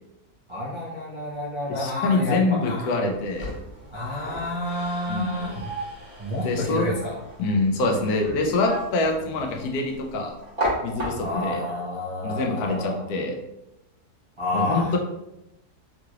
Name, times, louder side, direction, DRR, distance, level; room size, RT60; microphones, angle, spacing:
voice 1, 0.5-3.0 3.9-5.6 6.2-7.2 11.2-13.0 14.4-15.0, left 1 dB, 50° right, -8 dB, 0.3 m, -29 dB
voice 2, 1.7-3.5 5.1-5.4 6.4-7.0 7.4-10.3 10.8-11.6 12.2-13.4 14.5-15.0, left 2 dB, 80° left, 2 dB, 1.1 m, -25 dB
sound 1, 3.1-11.6, right 1 dB, 20° right, 1.4 m, -35 dB
3.8 x 3.0 x 2.4 m, 0.89 s
omnidirectional pair, 1.6 m